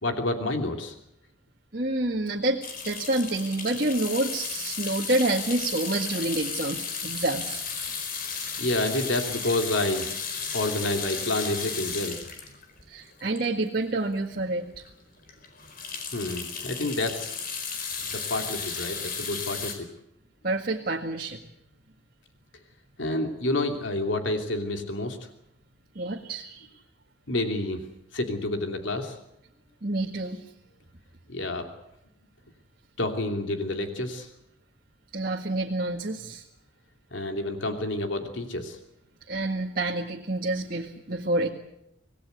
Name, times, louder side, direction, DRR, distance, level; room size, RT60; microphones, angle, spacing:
voice 1, 0.0-0.9 8.6-10.1 10.5-12.2 16.1-17.4 18.1-19.9 23.0-25.3 27.3-27.8 28.1-29.2 31.3-31.7 33.0-34.3 37.1-38.8, left 2 dB, 75° left, 5 dB, 2.9 m, -29 dB
voice 2, 1.7-7.6 12.9-14.8 20.4-21.4 26.0-26.7 29.8-30.4 35.1-36.4 39.3-41.5, right 2 dB, 50° right, 0 dB, 1.9 m, -28 dB
sound 1, 2.6-13.9 14.4-14.5 14.7-14.9 15.2-19.7, left 5 dB, 45° left, 4.7 m, -34 dB
26.5 x 19.0 x 8.1 m, 0.81 s
head